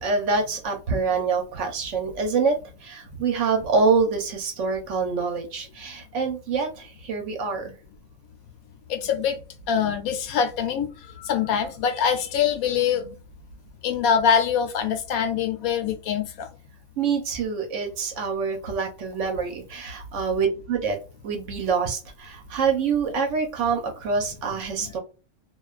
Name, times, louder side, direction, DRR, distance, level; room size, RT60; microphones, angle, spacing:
voice 1, 0.0-7.7 17.0-21.0 21.2-25.0, right 5 dB, 65° right, 0.9 m, -26 dB
voice 2, 8.9-9.4 9.6-13.2 13.8-16.5, left 7 dB, 85° left, 1.1 m, -24 dB
2.4 x 2.2 x 2.3 m
omnidirectional pair, 1.5 m